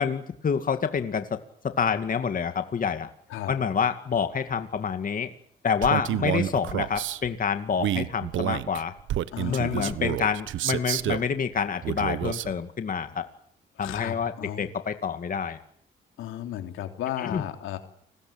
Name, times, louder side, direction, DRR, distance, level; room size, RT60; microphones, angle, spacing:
voice 1, 0.0-1.4 1.6-3.1 3.5-5.3 5.6-8.9 9.5-13.3 13.8-15.6 17.2-17.4, left 6 dB, 45° left, 8 dB, 2.3 m, -27 dB
Male speech man speaking, 5.8-7.2 7.8-11.3 11.8-12.5, right 12 dB, 75° right, 1.2 m, -29 dB
voice 2, 9.3-9.9 13.8-14.7 16.2-17.8, left 11 dB, 90° left, 6 dB, 3.5 m, -34 dB
29.5 x 21.0 x 8.9 m, 0.65 s
cardioid pair, 90°, 20 cm